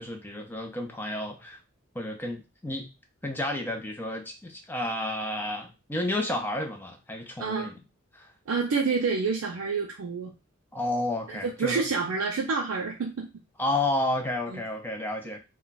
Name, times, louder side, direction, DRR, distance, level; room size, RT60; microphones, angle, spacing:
voice 1, 0.0-1.6 1.9-2.9 3.2-7.8 8.1-8.3 10.7-11.8 13.6-15.4, left 1 dB, 10° left, 3 dB, 0.4 m, -31 dB
voice 2, 7.4-7.7 8.5-10.3 11.3-13.3 14.5-14.6, right 4 dB, 80° right, 0 dB, 0.5 m, -28 dB
2.2 x 2.2 x 3.9 m, 0.28 s
head